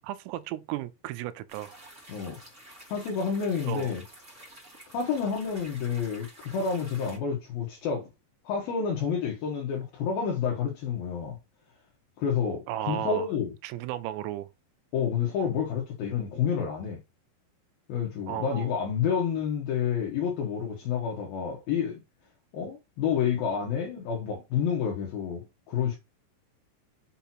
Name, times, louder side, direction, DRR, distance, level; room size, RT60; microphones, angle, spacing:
voice 1, 0.0-1.9 3.6-3.9 12.7-13.3 13.6-14.5 18.3-18.7, right 13 dB, 90° right, 3.2 m, -35 dB
sound 1, 1.5-7.2, right 1 dB, 30° right, 1.3 m, -50 dB
voice 2, 2.9-4.0 4.9-8.1 8.4-11.4 12.2-13.5 14.9-17.0 17.9-22.0 22.5-26.0, left 7 dB, 75° left, 2.2 m, -29 dB
6.8 x 5.8 x 2.9 m
omnidirectional pair, 5.9 m